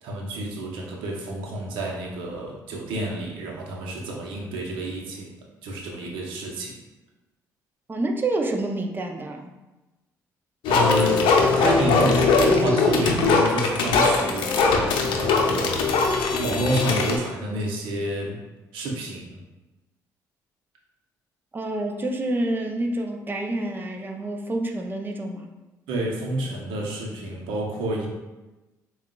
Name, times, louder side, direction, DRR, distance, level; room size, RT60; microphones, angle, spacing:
voice 1, 0.0-5.3 5.6-6.8 10.7-11.2 11.5-14.8 15.2-15.8 16.4-18.4 18.7-19.4 25.9-28.1, right 1 dB, 75° right, -1 dB, 0.8 m, -29 dB
voice 2, 7.9-9.5 21.5-25.5, right 2 dB, 25° right, 2 dB, 0.6 m, -28 dB
sound 1, 10.6-17.2, left 4 dB, 70° left, 0.6 m, -21 dB
7.1 x 2.4 x 2.3 m, 1.1 s
hypercardioid pair, 50°, 9 cm